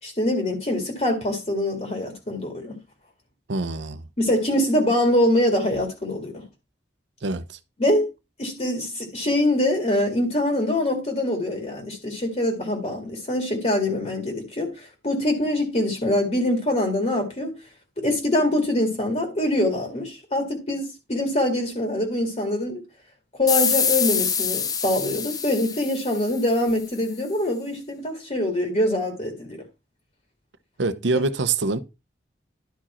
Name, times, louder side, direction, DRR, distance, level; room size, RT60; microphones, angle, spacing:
voice 1, 0.0-2.8 4.2-6.4 7.8-8.0 8.4-17.5 18.0-22.8 23.3-29.6, left 1 dB, 40° left, 2.2 m, -24 dB
voice 2, 3.5-4.0 7.2-7.6 30.8-31.8, right 3 dB, 85° right, 0.8 m, -25 dB
sound 1, 23.5-26.8, left 6 dB, 20° left, 0.6 m, -25 dB
11.5 x 4.8 x 4.3 m
head